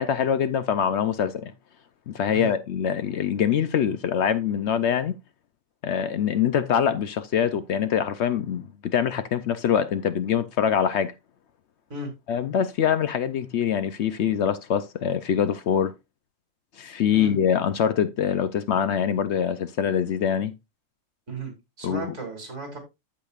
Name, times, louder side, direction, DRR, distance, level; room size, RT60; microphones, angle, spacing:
voice 1, 0.0-1.5 2.1-5.2 5.8-11.1 12.3-15.9 16.8-20.5 21.8-22.1, left 8 dB, 65° left, 0.8 m, -24 dB
voice 2, 21.8-22.8, right 3 dB, 65° right, 3.1 m, -34 dB
14.5 x 5.1 x 2.4 m
omnidirectional pair, 1.4 m